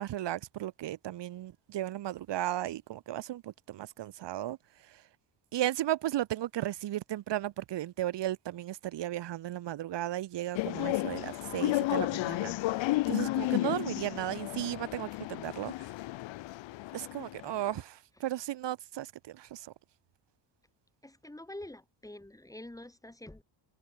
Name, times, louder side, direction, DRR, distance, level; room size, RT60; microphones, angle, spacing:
voice 1, 0.0-4.6 5.5-12.5 12.8-15.9 16.9-19.7, right 13 dB, 60° right, 2.2 m, -35 dB
sound 1, 10.5-17.7, left 18 dB, 70° left, 1.0 m, -33 dB
voice 2, 21.0-23.4, left 1 dB, 5° left, 2.2 m, -46 dB
cardioid pair, 120°, 46 cm